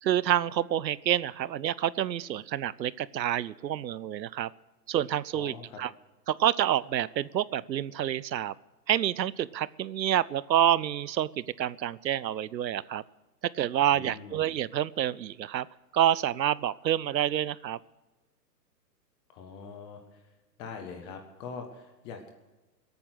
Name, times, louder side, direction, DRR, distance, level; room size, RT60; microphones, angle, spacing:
voice 1, 0.0-4.5 4.9-5.9 6.3-8.5 8.9-13.0 13.5-15.7 15.9-17.8, right 11 dB, 90° right, 21 dB, 0.7 m, -28 dB
voice 2, 5.3-5.8 13.9-14.4 19.3-20.2 20.6-22.3, left 5 dB, 10° left, 6 dB, 0.5 m, -43 dB
21.0 x 8.8 x 6.3 m, 1.2 s
hypercardioid pair, 135°, 50 cm